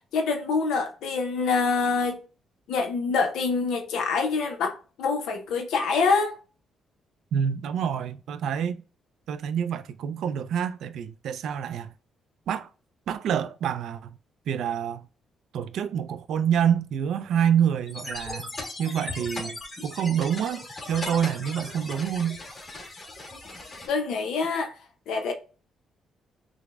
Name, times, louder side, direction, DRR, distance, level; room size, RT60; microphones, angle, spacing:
voice 1, 0.1-2.2 2.7-6.3 23.9-24.7 25.1-25.3, left 4 dB, 85° left, 0.6 m, -25 dB
voice 2, 7.3-8.8 9.3-11.9 12.5-12.7 13.1-14.1 14.5-15.0 15.5-18.5 18.8-19.6 19.8-20.6 20.9-22.4, right 8 dB, 75° right, 0.3 m, -27 dB
sound 1, 17.9-23.9, left 2 dB, 30° left, 1.5 m, -38 dB
6.0 x 2.0 x 2.3 m
cardioid pair, 90°, 0 cm